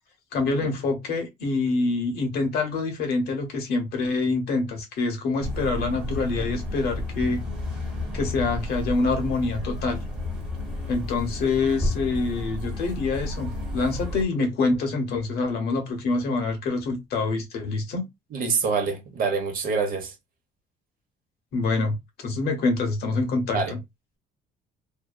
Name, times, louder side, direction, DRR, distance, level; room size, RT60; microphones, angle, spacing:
voice 1, 0.3-7.4 8.1-10.0 10.9-18.0 21.5-22.0 22.2-23.8, left 3 dB, 70° left, 0.9 m, -26 dB
sound 1, 5.4-14.2, left 1 dB, 5° right, 1.0 m, -31 dB
voice 2, 18.3-20.1 23.5-23.7, right 5 dB, 55° right, 0.8 m, -26 dB
2.6 x 2.2 x 2.2 m
cardioid pair, 110°, 17 cm